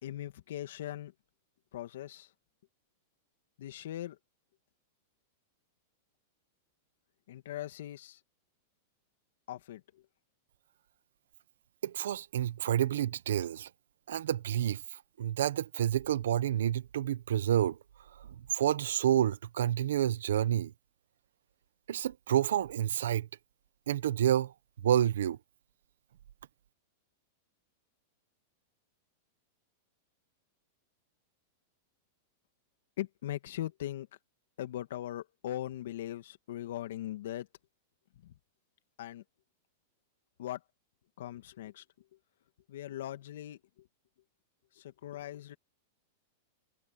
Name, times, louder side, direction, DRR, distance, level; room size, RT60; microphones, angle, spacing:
voice 1, 0.0-1.1 1.7-2.3 3.6-4.2 7.3-8.2 9.5-10.0 33.0-34.1 34.6-37.5 38.2-38.3 39.0-39.2 40.4-40.6 41.2-41.8 42.7-43.9 44.7-45.6, left 13 dB, 75° left, 2.4 m, -40 dB
voice 2, 11.8-13.7 14.1-17.8 18.1-20.7 21.9-23.3 23.9-24.5 24.8-25.4, right 10 dB, 80° right, 1.2 m, -29 dB
hypercardioid pair, 130°, 0 cm